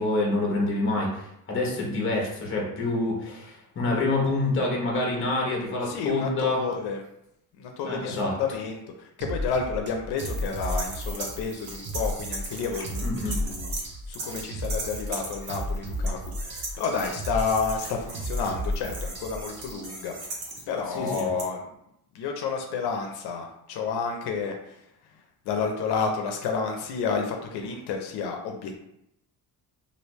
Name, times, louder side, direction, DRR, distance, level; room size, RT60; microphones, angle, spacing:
voice 1, 0.0-6.6 7.8-8.3 13.0-13.3 20.9-21.3, left 2 dB, 30° left, -2 dB, 0.9 m, -27 dB
voice 2, 5.8-7.0 7.5-13.7 14.1-20.1 20.7-21.7 22.1-24.9 25.5-28.7, left 5 dB, 85° left, 2 dB, 0.6 m, -30 dB
sound 1, 9.2-19.8, equal, 30° right, 0.5 m, -33 dB
sound 2, 10.2-13.9 14.1-21.4, right 3 dB, 65° right, 1.2 m, -38 dB
3.2 x 2.5 x 3.0 m, 0.78 s
cardioid pair, 165°, 38 cm